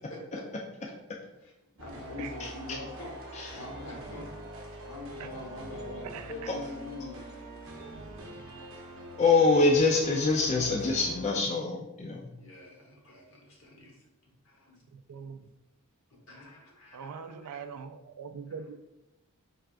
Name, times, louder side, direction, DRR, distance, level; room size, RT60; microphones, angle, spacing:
voice 1, 0.1-0.4 1.7-4.3 4.8-7.3 12.4-14.0 14.4-14.8 16.3-17.6, left 2 dB, 65° left, -1 dB, 1.1 m, -44 dB
sound 1, 1.8-11.3, right 1 dB, 60° right, 0.7 m, -44 dB
voice 2, 2.4-2.8 3.3-3.6 6.5-6.6 9.2-12.3, left 3 dB, 30° left, 0 dB, 0.3 m, -25 dB
voice 3, 6.1-6.5 14.9-15.4 16.9-18.8, right 6 dB, 85° right, 9 dB, 0.3 m, -42 dB
4.4 x 3.4 x 2.4 m, 0.93 s
head